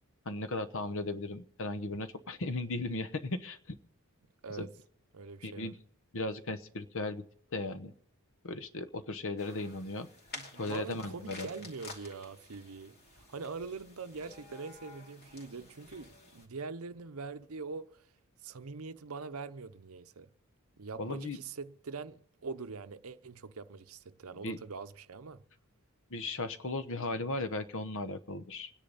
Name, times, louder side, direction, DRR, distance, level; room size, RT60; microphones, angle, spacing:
voice 1, 0.2-3.8 4.6-4.7 5.4-5.8 6.1-7.2 7.5-7.9 8.4-10.1 10.6-11.5 21.0-21.4 24.4-24.6 26.1-28.7, left 2 dB, 65° left, 1.0 m, -36 dB
voice 2, 5.1-5.7 10.3-18.1 18.4-20.3 20.8-25.4, right 4 dB, 75° right, 0.7 m, -43 dB
sound 1, 9.4-16.5, left 3 dB, 45° left, 2.6 m, -51 dB
26.5 x 10.0 x 4.0 m
head